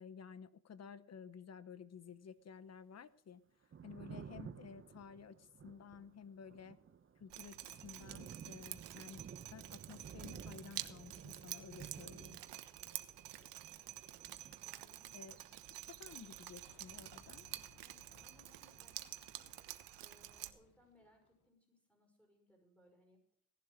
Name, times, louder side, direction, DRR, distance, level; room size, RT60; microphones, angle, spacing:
voice 1, 0.0-3.4 3.8-6.8 7.2-9.2 9.5-12.4 15.1-15.4 15.9-17.5, left 7 dB, 40° left, 15 dB, 1.0 m, -53 dB
Thunder, 3.5-17.9 18.2-19.4, right 7 dB, 30° right, 0.9 m, -55 dB
Drip, 7.3-20.5, right 14 dB, 80° right, 1.2 m, -49 dB
voice 2, 13.1-13.7 14.6-15.9 17.8-23.2, left 1 dB, 5° left, 1 dB, 5.6 m, -70 dB
sound 1, 16.5-21.5, left 4 dB, 60° left, 3.4 m, -67 dB
17.0 x 11.5 x 5.0 m, 0.65 s
cardioid pair, 120°, 41 cm